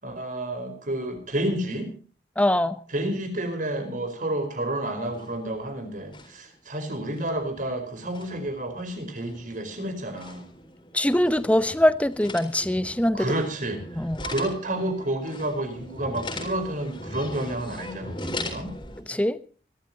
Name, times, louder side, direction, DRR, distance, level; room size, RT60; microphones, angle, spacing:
voice 1, 0.0-1.9 2.9-10.5 13.1-18.7, right 1 dB, 45° right, 4.6 m, -30 dB
voice 2, 2.4-2.8 10.9-13.3 14.0-14.2 19.1-19.4, left 1 dB, 10° left, 0.8 m, -22 dB
sound 1, 5.0-5.7 5.9-6.5 6.9-19.0, left 2 dB, 30° left, 4.0 m, -40 dB
26.5 x 13.0 x 2.9 m
head